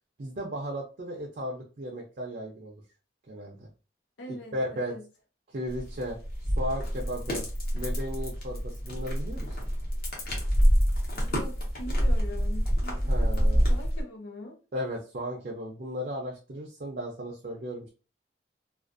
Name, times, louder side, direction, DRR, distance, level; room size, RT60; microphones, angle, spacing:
voice 1, 0.2-2.8 3.3-3.7 4.3-4.9 5.5-6.2 6.6-7.5 7.7-9.7 13.1-13.6 14.7-17.9, equal, 50° right, 0.5 m, -35 dB
voice 2, 4.2-5.0 11.2-14.6, left 1 dB, 85° left, 0.7 m, -43 dB
sound 1, 5.7-14.0, equal, 55° left, 0.9 m, -27 dB
2.4 x 2.4 x 2.4 m
head